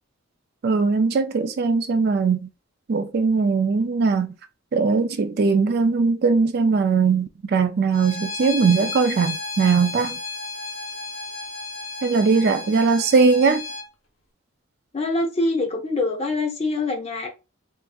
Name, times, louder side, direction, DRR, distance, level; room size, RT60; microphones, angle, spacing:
voice 1, 0.6-2.5 2.9-4.3 4.7-10.2 12.0-13.6, right 4 dB, 50° right, 0.4 m, -20 dB
Bowed string instrument, 7.9-13.9, left 3 dB, 70° left, 1.0 m, -33 dB
voice 2, 14.9-17.3, left 2 dB, 30° left, 0.7 m, -24 dB
3.4 x 2.7 x 2.4 m
head